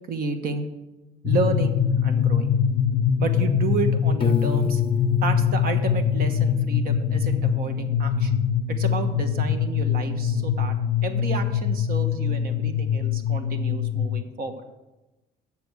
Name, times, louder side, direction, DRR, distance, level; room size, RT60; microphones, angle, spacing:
voice 1, 0.1-0.7 1.2-2.5 3.2-4.8 5.2-8.3 8.7-10.8 11.0-14.5, right 4 dB, 60° right, 7 dB, 1.2 m, -31 dB
sound 1, 1.2-14.2, left 7 dB, 80° left, 0.5 m, -23 dB
Piano, 4.2-7.1, left 8 dB, 30° left, 0.5 m, -30 dB
7.1 x 6.7 x 8.0 m, 1.0 s
cardioid pair, 110°, 17 cm